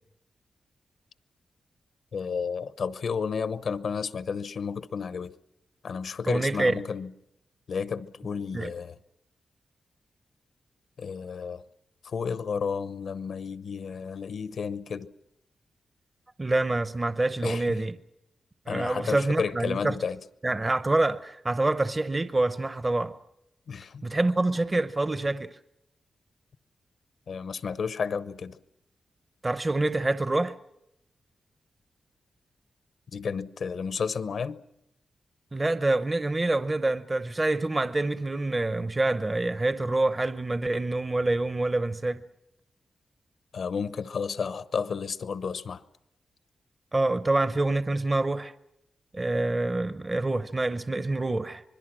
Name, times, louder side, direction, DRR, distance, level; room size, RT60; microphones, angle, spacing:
voice 1, 2.1-5.3 5.8-7.1 7.7-9.0 11.0-11.6 12.0-15.1 17.4-17.8 18.7-20.2 23.7-24.0 27.3-28.6 33.1-34.6 43.5-45.8, left 6 dB, 70° left, 0.8 m, -32 dB
voice 2, 6.3-6.7 8.5-8.7 16.4-18.0 18.7-20.0 20.4-23.2 24.0-25.6 29.4-30.6 35.5-42.2 46.9-48.5 49.1-51.6, right 2 dB, 25° right, 0.7 m, -26 dB
25.5 x 21.0 x 6.2 m
wide cardioid pair, 110°, 0 cm